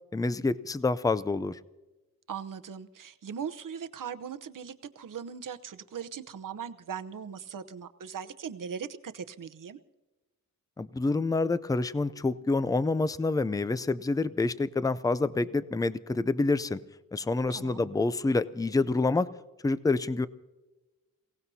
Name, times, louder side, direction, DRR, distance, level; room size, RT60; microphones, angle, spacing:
voice 1, 0.1-1.6 10.8-16.8 17.1-19.3 19.6-20.3, left 3 dB, 10° left, 15 dB, 0.4 m, -27 dB
voice 2, 2.3-9.8 17.5-17.9, right 7 dB, 65° right, 10 dB, 0.9 m, -39 dB
29.0 x 17.5 x 2.8 m, 1.1 s
wide cardioid pair, 145°, 35 cm